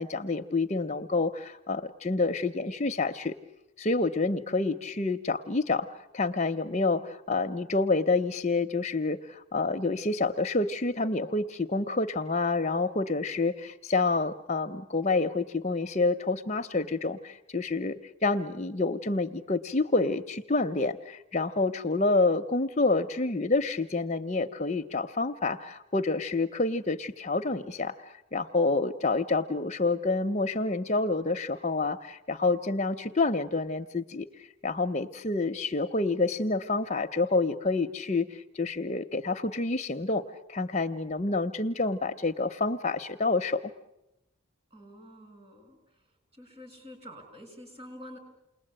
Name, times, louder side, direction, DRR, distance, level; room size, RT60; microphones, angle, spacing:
voice 1, 0.0-3.3 3.8-5.9 6.1-17.9 18.2-40.2 40.5-43.7, left 3 dB, 35° left, 7 dB, 0.9 m, -28 dB
voice 2, 44.7-46.0 46.3-48.2, equal, 30° right, 4 dB, 7.5 m, -48 dB
29.5 x 21.0 x 8.9 m, 0.93 s
head